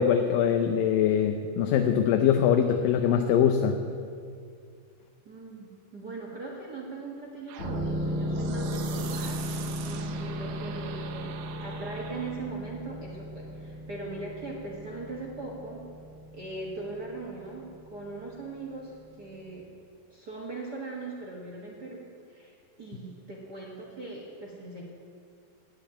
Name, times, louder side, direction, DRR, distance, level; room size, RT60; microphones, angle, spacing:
voice 1, 0.0-3.8, left 8 dB, 80° left, 5 dB, 2.4 m, -23 dB
voice 2, 5.2-15.9 16.3-19.6 20.1-24.8, right 3 dB, 45° right, -3 dB, 1.3 m, -40 dB
sound 1, 7.5-12.5, right 8 dB, 70° right, 1.8 m, -41 dB
sound 2, 7.6-19.1 19.4-19.5, equal, 30° left, 2.1 m, -36 dB
10.0 x 10.0 x 9.0 m, 2.3 s
omnidirectional pair, 4.0 m